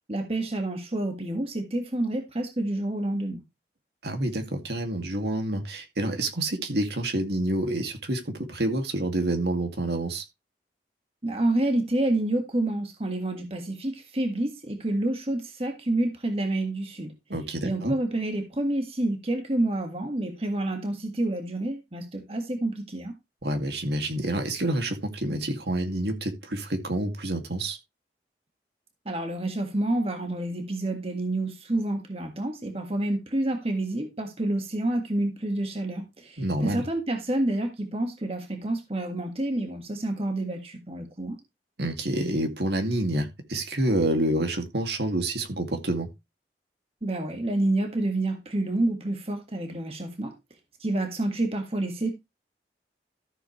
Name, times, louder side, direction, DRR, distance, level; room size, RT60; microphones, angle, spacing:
voice 1, 0.1-3.4 11.2-17.1 17.6-23.2 29.1-41.4 47.0-50.3 50.8-52.1, right 1 dB, 35° right, 1.7 m, -28 dB
voice 2, 4.0-10.2 17.3-17.9 23.4-27.8 36.4-36.8 41.8-46.1, right 1 dB, 70° right, 2.3 m, -28 dB
13.5 x 7.6 x 3.2 m
head